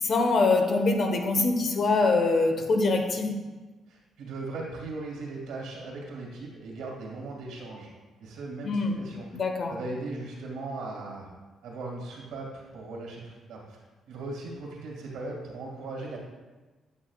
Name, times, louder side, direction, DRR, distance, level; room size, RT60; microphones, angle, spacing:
voice 1, 0.0-3.4 8.6-9.0 9.3-9.7, left 3 dB, 55° left, 4 dB, 1.2 m, -24 dB
voice 2, 3.9-7.9 8.2-9.4 9.7-11.3 11.6-13.8 14.1-16.2, right 2 dB, 85° right, -2 dB, 2.2 m, -38 dB
8.9 x 8.5 x 2.4 m, 1.2 s
cardioid pair, 90°, 0 cm